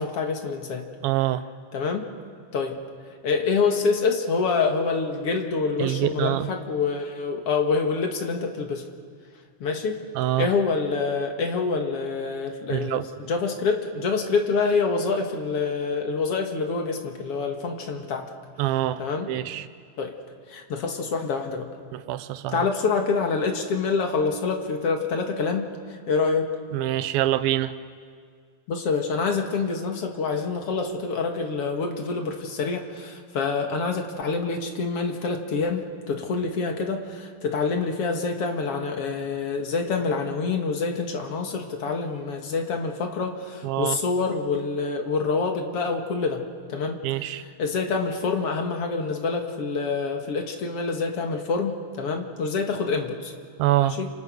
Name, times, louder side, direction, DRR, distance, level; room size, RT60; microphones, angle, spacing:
voice 1, 0.0-0.9 1.7-2.1 2.5-2.8 3.2-8.8 9.6-10.0 10.4-18.3 19.0-19.3 20.0-20.1 20.5-21.7 22.5-26.5 28.7-46.4 46.7-53.3 53.8-54.1, left 4 dB, 50° left, 3 dB, 2.2 m, -26 dB
voice 2, 1.0-1.4 5.8-6.5 10.2-10.5 12.7-13.0 18.6-19.7 21.9-22.7 26.7-27.7 43.6-44.0 47.0-47.4 53.6-54.0, right 14 dB, 80° right, 13 dB, 2.6 m, -25 dB
29.0 x 27.5 x 6.3 m, 2.1 s
omnidirectional pair, 4.3 m